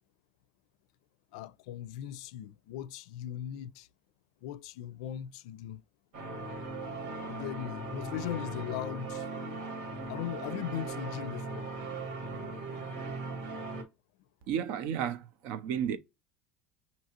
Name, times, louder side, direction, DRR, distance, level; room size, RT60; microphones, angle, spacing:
voice 1, 1.3-3.9 4.4-5.8 7.2-9.3 10.1-11.7, left 11 dB, 80° left, 0.4 m, -39 dB
sound 1, 6.1-13.8, right 3 dB, 80° right, 1.5 m, -39 dB
voice 2, 14.5-16.0, right 9 dB, 60° right, 0.5 m, -32 dB
6.5 x 2.7 x 2.8 m
cardioid pair, 170°, 4 cm